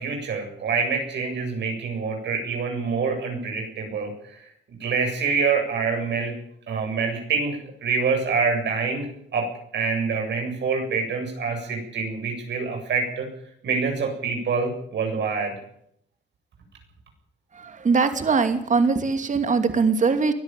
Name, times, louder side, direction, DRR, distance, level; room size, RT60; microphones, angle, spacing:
voice 1, 0.0-4.4 4.7-6.3 6.7-9.1 9.3-9.5 9.7-13.3 13.6-15.5, right 5 dB, 60° right, 3 dB, 7.7 m, -26 dB
voice 2, 17.8-20.3, right 4 dB, 40° right, 8 dB, 2.7 m, -21 dB
23.0 x 13.5 x 9.3 m, 0.71 s
cardioid pair, 90°, 20 cm